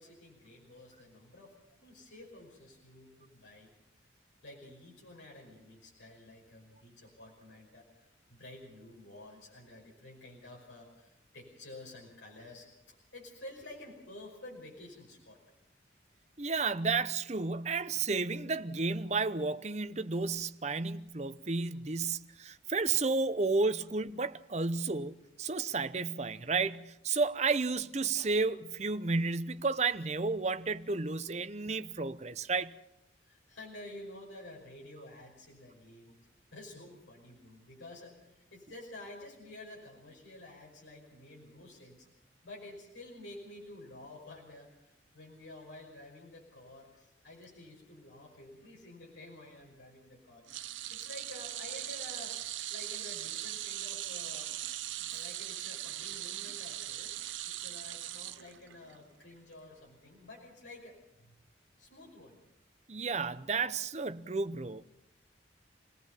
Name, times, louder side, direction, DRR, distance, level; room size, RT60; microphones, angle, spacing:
voice 1, 0.0-1.6 1.8-3.7 4.4-15.4 33.2-36.2 36.5-42.1 42.4-52.4 52.7-54.5 55.1-57.1 57.5-61.4 61.8-62.4, left 1 dB, 75° left, 5.5 m, -51 dB
voice 2, 16.4-32.7 62.9-64.8, right 4 dB, 35° right, 0.7 m, -32 dB
sound 1, 50.5-59.0 59.3-59.5 60.7-60.8, right 13 dB, 80° right, 0.8 m, -40 dB
27.5 x 18.0 x 5.8 m
head